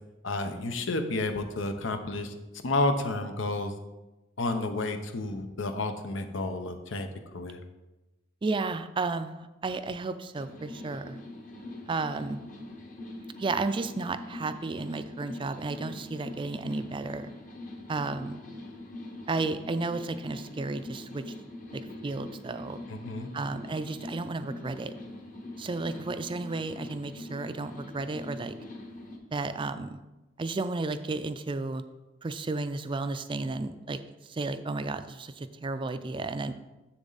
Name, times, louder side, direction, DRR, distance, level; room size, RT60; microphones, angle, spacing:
voice 1, 0.2-2.3 2.6-3.7 4.4-7.1 7.3-7.6 22.9-23.3, left 2 dB, 85° left, 7 dB, 0.8 m, -30 dB
voice 2, 8.4-11.2 11.9-12.4 13.4-17.3 17.9-18.4 19.3-21.3 21.7-22.8 23.3-24.9 25.6-28.5 29.3-30.0 30.4-31.8 32.2-34.0 34.3-36.5, right 3 dB, 25° right, 11 dB, 0.4 m, -33 dB
sound 1, 10.3-29.2, left 1 dB, 45° left, 1.1 m, -43 dB
7.4 x 7.0 x 4.0 m, 1.1 s
head